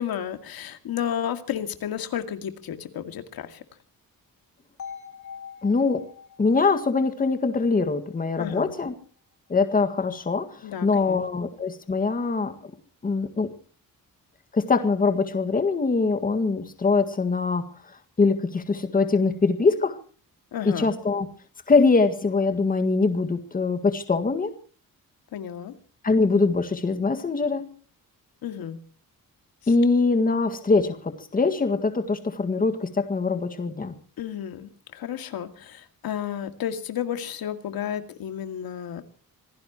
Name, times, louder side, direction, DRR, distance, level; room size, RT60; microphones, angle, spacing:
voice 1, 0.0-3.6 8.4-8.7 10.6-11.4 20.5-20.9 25.3-25.8 28.4-28.8 34.2-39.0, left 9 dB, 80° left, 8 dB, 2.3 m, -32 dB
sound 1, 4.8-8.8, left 7 dB, 55° left, 3.6 m, -44 dB
voice 2, 5.6-6.1 6.4-8.9 9.5-12.6 13.0-13.5 14.5-20.0 20.7-21.3 21.7-24.5 26.0-27.7 29.7-34.0, left 4 dB, 25° left, 8 dB, 1.8 m, -23 dB
26.0 x 17.5 x 3.0 m, 0.42 s
wide cardioid pair, 170°, 35 cm